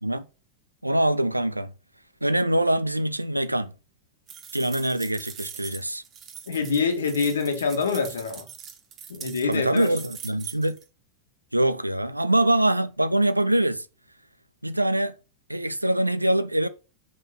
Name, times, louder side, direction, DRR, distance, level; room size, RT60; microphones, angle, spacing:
voice 1, 0.8-1.7 2.2-3.7 4.5-6.0 9.4-10.8 11.5-13.9 14.6-15.1 15.5-16.7, right 1 dB, 85° right, 0.5 m, -24 dB
sound 1, 4.3-10.8, right 8 dB, 30° right, 1.6 m, -42 dB
voice 2, 6.5-8.5 9.1-9.9, left 5 dB, 70° left, 1.6 m, -25 dB
6.1 x 5.3 x 5.7 m
figure-of-eight pair, 90°, 0 cm